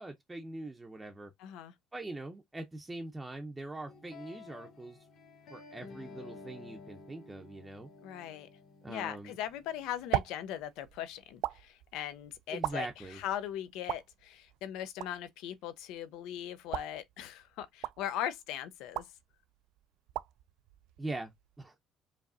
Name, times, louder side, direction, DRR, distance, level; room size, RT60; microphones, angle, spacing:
voice 1, 0.0-1.3 1.9-5.0 5.5-7.9 8.8-9.4 12.5-13.2 21.0-21.7, right 2 dB, 10° right, 0.6 m, -42 dB
voice 2, 1.4-1.7 8.0-8.5 8.9-12.9 13.1-19.1, left 11 dB, 80° left, 0.6 m, -39 dB
sound 1, 3.9-10.9, left 4 dB, 45° left, 1.2 m, -53 dB
sound 2, 9.4-21.6, right 15 dB, 75° right, 0.3 m, -42 dB
4.8 x 2.8 x 2.6 m
cardioid pair, 165°, 0 cm